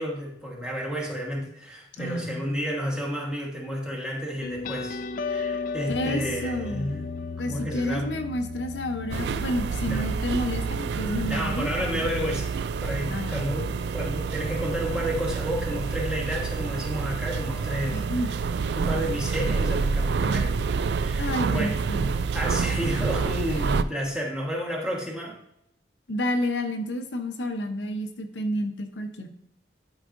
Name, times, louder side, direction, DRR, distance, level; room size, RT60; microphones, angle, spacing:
voice 1, 0.0-5.0 5.3-7.1 7.4-8.1 9.9-10.1 11.1-12.5 12.8-18.1 18.7-21.8 22.3-25.4, equal, 5° right, -3 dB, 1.3 m, -31 dB
voice 2, 2.0-2.6 5.9-6.9 7.4-12.0 13.1-13.5 17.9-18.3 21.2-22.1 23.5-23.7 26.1-29.3, left 1 dB, 85° left, 5 dB, 0.8 m, -30 dB
sound 1, 4.4-11.6, left 5 dB, 50° left, 0.3 m, -35 dB
sound 2, 9.1-23.8, right 5 dB, 70° right, 0.3 m, -28 dB
11.0 x 4.9 x 2.6 m, 0.76 s
head